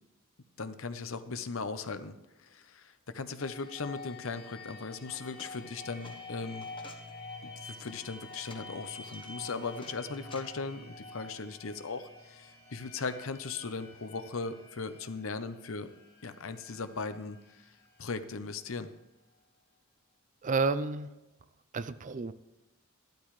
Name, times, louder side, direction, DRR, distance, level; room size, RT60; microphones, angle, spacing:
voice 1, 0.6-6.7 7.4-15.9 16.2-17.7 18.0-18.9, left 4 dB, 70° left, 10 dB, 0.8 m, -38 dB
sound 1, 3.4-19.0, left 3 dB, 50° left, 1.5 m, -48 dB
sound 2, 5.1-7.1 7.6-10.4, left 3 dB, 25° left, 1.1 m, -53 dB
voice 2, 20.4-21.1 21.7-22.3, right 4 dB, 40° right, 13 dB, 0.4 m, -30 dB
13.5 x 12.0 x 3.2 m, 0.97 s
head